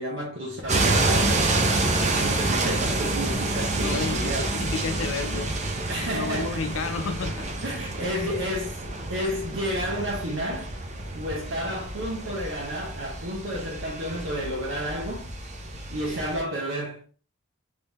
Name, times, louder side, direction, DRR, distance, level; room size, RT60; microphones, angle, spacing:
voice 1, 0.0-1.4 2.1-4.5 5.9-6.7 7.6-10.7 11.1-15.3 15.9-17.0, equal, 65° right, 1.1 m, -31 dB
sound 1, 0.7-16.4, right 2 dB, 35° right, 0.7 m, -28 dB
voice 2, 3.8-5.6 5.9-7.5, left 4 dB, 75° left, 0.5 m, -32 dB
3.7 x 3.3 x 4.1 m
head